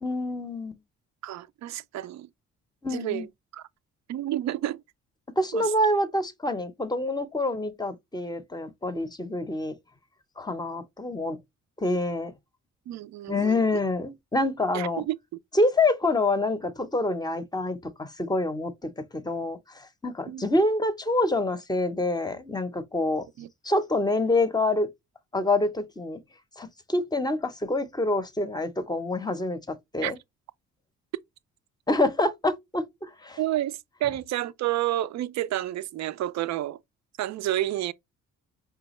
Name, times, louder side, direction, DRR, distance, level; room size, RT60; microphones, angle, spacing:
voice 1, 0.0-0.8 2.8-3.3 5.4-9.7 10.4-11.4 11.8-12.3 13.3-15.0 15.5-23.3 23.6-24.9 25.3-26.2 26.6-30.2 31.9-33.4, left 2 dB, 15° left, 0.6 m, -26 dB
voice 2, 1.2-2.3 2.9-3.3 3.5-3.6 4.1-4.8 5.5-5.7 12.9-13.6 14.7-15.2 20.3-20.5 23.4-23.5 30.0-30.1 33.4-36.8 37.2-37.9, right 13 dB, 65° right, 0.4 m, -30 dB
4.8 x 2.3 x 3.0 m
cardioid pair, 90°, 30 cm